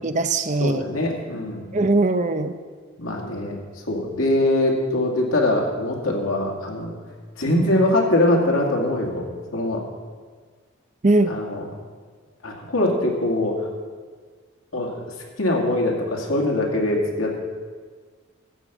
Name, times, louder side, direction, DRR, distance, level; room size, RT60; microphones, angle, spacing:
voice 1, 0.0-0.8 1.7-2.5 11.0-11.4, right 2 dB, 35° right, 9 dB, 0.6 m, -20 dB
voice 2, 0.6-1.7 3.0-3.6 3.9-6.9 7.4-9.8 11.3-11.7 12.4-13.7 14.7-14.9 15.4-17.4, left 1 dB, 85° left, -1 dB, 2.3 m, -22 dB
13.5 x 5.3 x 8.2 m, 1.5 s
head